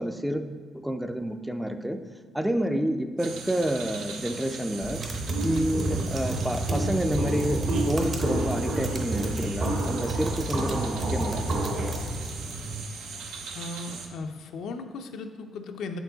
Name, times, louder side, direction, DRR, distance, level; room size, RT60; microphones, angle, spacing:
voice 1, 0.0-2.1 2.3-5.1 5.4-11.5, equal, 5° right, 8 dB, 0.4 m, -29 dB
sound 1, 3.2-14.1, right 4 dB, 85° right, 0.7 m, -40 dB
sound 2, 4.8-12.8, right 2 dB, 40° right, 0.8 m, -33 dB
Walk footsteps, 5.3-12.0, right 1 dB, 65° right, 1.5 m, -30 dB
voice 2, 13.5-16.0, left 3 dB, 75° left, 6 dB, 0.5 m, -37 dB
7.3 x 4.5 x 3.9 m, 1.5 s
cardioid pair, 90°, 0 cm